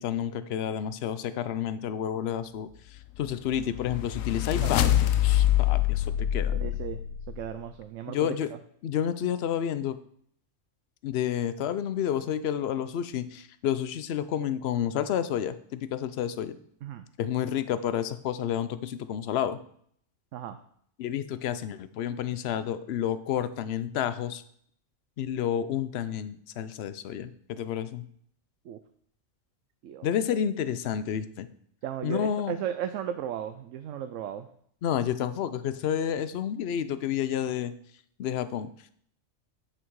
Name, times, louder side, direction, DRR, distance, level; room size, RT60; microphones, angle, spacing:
voice 1, 0.0-5.0 5.2-6.7 8.1-8.5 8.8-10.0 11.0-16.6 17.2-19.6 21.0-24.4 25.2-28.1 30.0-31.5 32.0-32.5 34.8-37.7 38.2-38.7, left 9 dB, 60° left, 13 dB, 0.8 m, -30 dB
sound 1, 3.3-7.5, left 12 dB, 90° left, 1.0 m, -25 dB
voice 2, 6.6-8.3 16.8-17.0 20.3-20.6 28.6-28.8 29.8-30.1 31.8-34.5, right 9 dB, 75° right, 9 dB, 0.9 m, -35 dB
9.9 x 6.1 x 4.7 m, 0.64 s
omnidirectional pair, 1.3 m